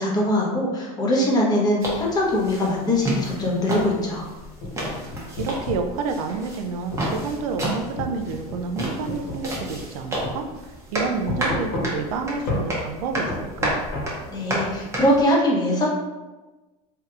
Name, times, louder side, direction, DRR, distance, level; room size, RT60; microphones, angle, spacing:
voice 1, 0.0-4.2 14.3-15.9, left 1 dB, 20° left, -3 dB, 0.8 m, -22 dB
sound 1, 1.8-15.2, right 1 dB, 15° right, 0.8 m, -31 dB
sound 2, 4.5-5.9 6.9-7.1 8.0-10.0 10.2-10.4 11.3-12.1 12.5-12.7 13.3-14.1, left 2 dB, 60° left, 1.1 m, -30 dB
voice 2, 5.4-13.8, right 4 dB, 90° right, 5 dB, 0.4 m, -29 dB
3.3 x 2.8 x 2.4 m, 1.2 s
supercardioid pair, 135°, 18 cm